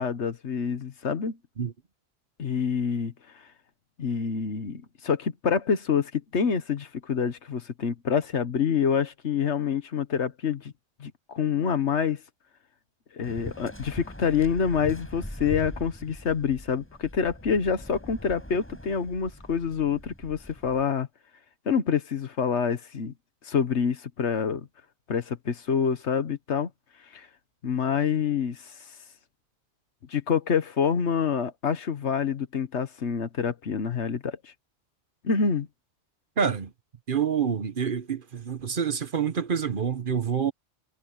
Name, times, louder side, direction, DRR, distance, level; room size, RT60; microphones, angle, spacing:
voice 1, 0.0-1.4 2.4-3.1 4.0-10.7 11.0-12.2 13.1-21.1 21.6-23.1 23.4-24.7 25.1-26.7 27.1-27.3 27.6-28.7 30.1-34.5 35.2-35.7, left 6 dB, 85° left, 1.5 m, -27 dB
Waves surf, 13.2-20.8, equal, 10° left, 5.0 m, -42 dB
voice 2, 36.4-36.7 37.1-40.5, right 7 dB, 50° right, 1.1 m, -27 dB
omnidirectional pair, 1.1 m